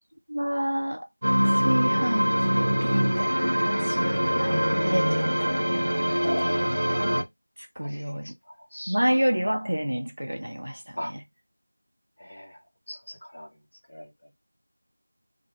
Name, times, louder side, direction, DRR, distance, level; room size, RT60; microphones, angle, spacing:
voice 1, 0.3-1.1 1.4-5.6 6.4-6.7 7.0-7.3 7.6-8.3 8.9-11.2, equal, 60° right, 0.8 m, -29 dB
sound 1, 1.2-7.2, equal, 25° right, 1.0 m, -24 dB
voice 2, 6.2-6.6 7.8-9.0 11.0-11.1 12.2-12.6 12.9-13.5 13.9-14.1, equal, 15° left, 0.3 m, -37 dB
2.2 x 2.2 x 3.1 m
figure-of-eight pair, 180°, 0 cm